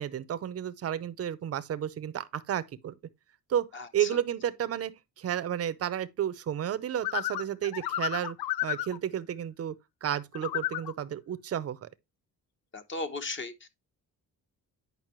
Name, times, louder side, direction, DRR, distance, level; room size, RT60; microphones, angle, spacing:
voice 1, 0.0-2.9 3.5-3.7 3.9-8.4 8.6-9.7 10.0-11.9, right 10 dB, 40° right, 0.6 m, -32 dB
voice 2, 3.7-4.1 12.7-13.5, left 3 dB, 35° left, 0.9 m, -36 dB
sound 1, 7.0-9.0 10.3-10.9, left 15 dB, 85° left, 0.5 m, -32 dB
9.0 x 5.3 x 3.0 m
cardioid pair, 130°, 36 cm